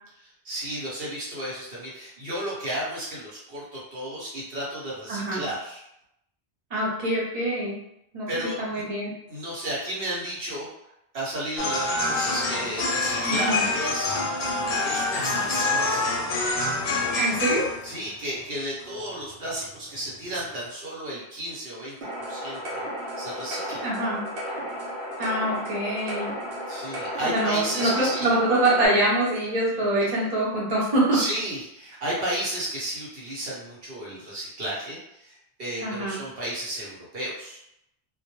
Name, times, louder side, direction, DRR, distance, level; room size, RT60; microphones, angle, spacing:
voice 1, 0.4-5.8 8.3-8.8 9.3-10.7 11.1-16.1 17.8-22.9 23.2-23.8 26.7-28.3 31.1-35.3 35.6-37.6, right 1 dB, 70° right, -6 dB, 1.0 m, -33 dB
voice 2, 5.1-5.4 6.7-7.8 8.1-8.3 8.6-9.1 13.2-13.6 17.1-17.7 23.8-24.2 25.2-26.3 27.2-31.2 35.8-36.2, right 1 dB, 40° right, -6 dB, 0.8 m, -24 dB
sound 1, 11.6-18.1 18.4-18.5 18.8-19.2 19.6-19.7 20.0-20.1 20.4-20.5, left 2 dB, 65° left, 0.7 m, -26 dB
sound 2, 22.0-28.9, equal, 85° right, 0.9 m, -34 dB
2.2 x 2.2 x 2.9 m, 0.80 s
omnidirectional pair, 1.0 m